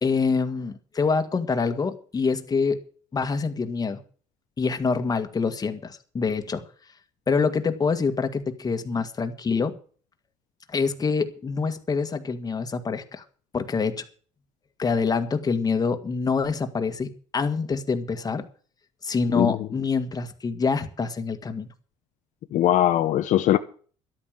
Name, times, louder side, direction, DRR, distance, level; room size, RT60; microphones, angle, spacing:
voice 1, 0.0-2.8 3.1-4.0 4.6-6.6 7.3-9.7 10.7-13.2 13.5-14.1 14.8-18.5 19.0-21.7, left 5 dB, 25° left, 1.8 m, -26 dB
voice 2, 22.5-23.6, left 12 dB, 60° left, 0.9 m, -20 dB
12.5 x 8.8 x 7.4 m
supercardioid pair, 95°, 14 cm